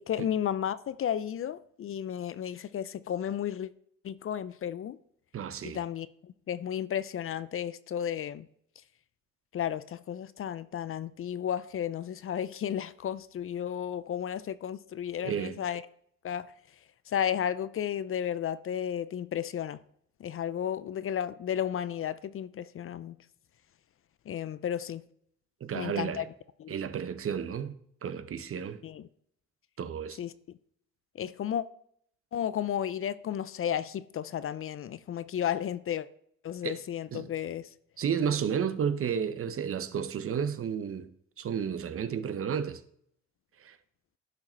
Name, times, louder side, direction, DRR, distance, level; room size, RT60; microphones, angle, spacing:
voice 1, 0.0-3.7 4.0-5.0 5.6-8.5 9.5-15.8 16.2-16.5 17.1-19.8 20.2-23.2 24.3-25.0 25.7-26.2 26.6-26.7 28.8-29.0 30.2-30.3 31.2-31.6 32.3-36.1 36.4-37.7, left 9 dB, 45° left, 0.5 m, -33 dB
voice 2, 5.3-5.8 15.2-15.6 25.6-26.3 26.7-27.8 28.0-28.8 29.8-30.2 36.6-36.8 37.1-37.3 38.0-41.1 41.4-42.8 43.6-43.8, right 7 dB, 45° right, 0.8 m, -32 dB
11.5 x 4.9 x 4.4 m
cardioid pair, 90°, 30 cm